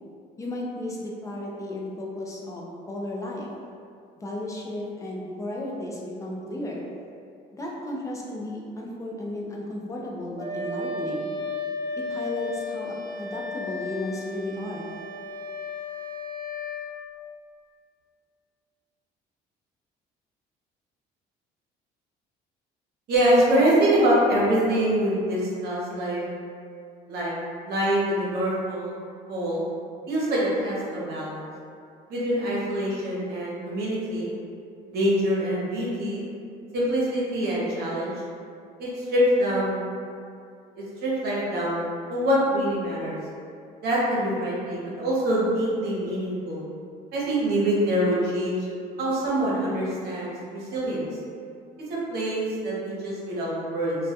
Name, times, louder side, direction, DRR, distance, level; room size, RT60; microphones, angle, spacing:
voice 1, 0.4-3.5 4.2-6.8 7.5-11.3 12.0-14.9, left 1 dB, 20° left, -3 dB, 0.4 m, -34 dB
Wind instrument woodwind instrument, 10.4-16.9, left 3 dB, 25° right, 0.9 m, -34 dB
voice 2, 23.1-26.3 27.1-27.3 27.6-28.9 29.3-29.6 30.1-31.4 32.1-34.3 34.9-36.2 36.7-38.1 38.8-39.8 40.8-43.2 43.8-46.6 47.1-48.6 49.0-51.0 51.9-54.0, right 1 dB, 70° right, -6 dB, 0.8 m, -25 dB
2.2 x 2.2 x 2.7 m, 2.4 s
cardioid pair, 110°, 17 cm